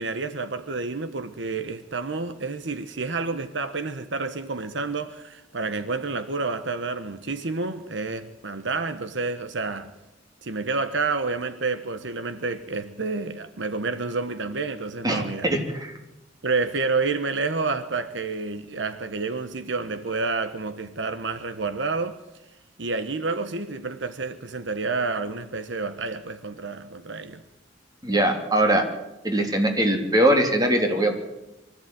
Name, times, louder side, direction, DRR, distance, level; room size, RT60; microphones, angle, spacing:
voice 1, 0.0-9.9 10.4-15.5 16.4-22.2 22.8-27.4, right 3 dB, 70° right, 1.1 m, -29 dB
voice 2, 15.0-15.9 28.0-28.9 29.2-31.2, right 1 dB, 20° right, 3.4 m, -21 dB
24.0 x 14.5 x 9.3 m
head